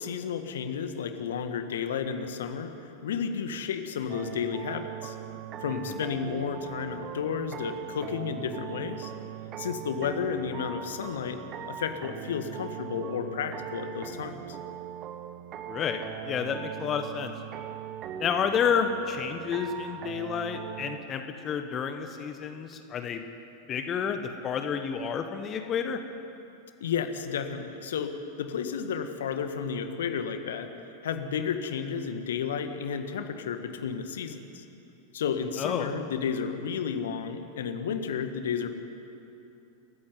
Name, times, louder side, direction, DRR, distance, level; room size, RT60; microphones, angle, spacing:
voice 1, 0.0-5.2 5.6-9.1 9.6-11.4 11.7-14.6 26.8-30.7 31.0-34.6 35.1-38.7, left 7 dB, 60° left, 7 dB, 1.8 m, -32 dB
sound 1, 4.1-21.0, right 10 dB, 35° right, 1.1 m, -40 dB
voice 2, 15.7-17.3 18.2-23.2 23.7-26.0 35.6-35.9, left 7 dB, 30° left, 7 dB, 1.5 m, -30 dB
27.5 x 15.0 x 9.6 m, 2.8 s
figure-of-eight pair, 90°, 0 cm